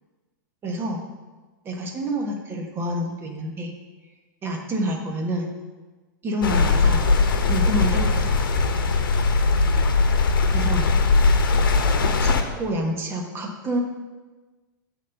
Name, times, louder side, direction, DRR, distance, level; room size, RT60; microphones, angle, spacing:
voice 1, 0.6-1.0 1.6-3.7 4.4-5.5 6.2-7.1 7.5-8.5 10.5-10.9 12.2-13.8, equal, 20° right, 1 dB, 1.3 m, -28 dB
sound 1, 6.4-12.4, left 3 dB, 85° left, 1.0 m, -20 dB
8.2 x 4.0 x 6.7 m, 1.3 s
hypercardioid pair, 135°, 11 cm